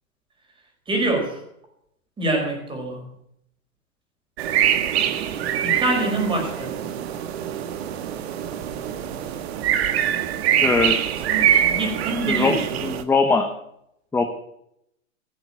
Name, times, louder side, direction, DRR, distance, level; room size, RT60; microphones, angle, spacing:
voice 1, 0.9-1.4 2.2-3.1 5.6-6.8 11.3-12.7, right 2 dB, 10° right, 3 dB, 4.7 m, -25 dB
sound 1, 4.4-13.0, right 10 dB, 45° right, 1.7 m, -24 dB
voice 2, 10.6-11.0 12.3-13.5 14.1-14.3, left 4 dB, 5° left, 5 dB, 1.0 m, -21 dB
17.0 x 7.9 x 8.7 m, 0.75 s
hypercardioid pair, 135°, 41 cm